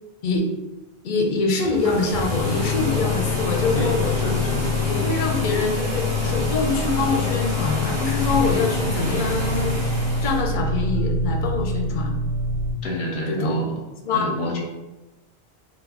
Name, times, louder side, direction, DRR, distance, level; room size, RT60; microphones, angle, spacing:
voice 1, 1.0-4.1 4.9-9.8 10.2-12.1 13.3-13.6 14.0-14.3, left 3 dB, 60° left, 1 dB, 0.6 m, -24 dB
sound 1, 1.6-10.4, left 2 dB, 20° right, 0.8 m, -28 dB
sound 2, 2.1-12.7, left 2 dB, 55° right, 0.5 m, -26 dB
voice 2, 3.7-4.7 12.8-13.7 14.1-14.6, equal, 85° left, 0 dB, 0.9 m, -27 dB
2.4 x 2.1 x 3.4 m, 1.1 s
omnidirectional pair, 1.1 m